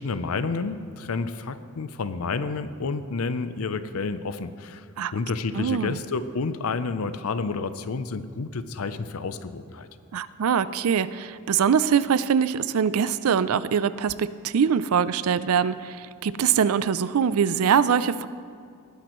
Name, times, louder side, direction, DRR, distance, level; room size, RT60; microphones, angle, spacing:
voice 1, 0.0-4.9 5.1-9.9, left 4 dB, 70° left, 12 dB, 0.6 m, -30 dB
voice 2, 5.5-6.0 10.1-18.3, right 7 dB, 75° right, 16 dB, 0.4 m, -23 dB
19.5 x 10.5 x 3.1 m, 2.3 s
head